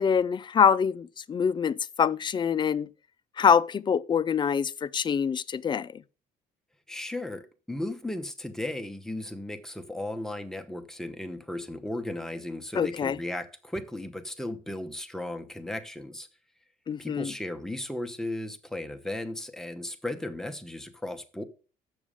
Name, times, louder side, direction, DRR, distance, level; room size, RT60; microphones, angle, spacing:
voice 1, 0.0-2.9 3.4-6.0 12.8-13.2 16.9-17.3, left 7 dB, 25° left, 0.4 m, -25 dB
voice 2, 6.9-16.3 17.0-21.4, left 1 dB, 5° left, 0.9 m, -35 dB
7.2 x 6.2 x 4.9 m
cardioid pair, 110°, 17 cm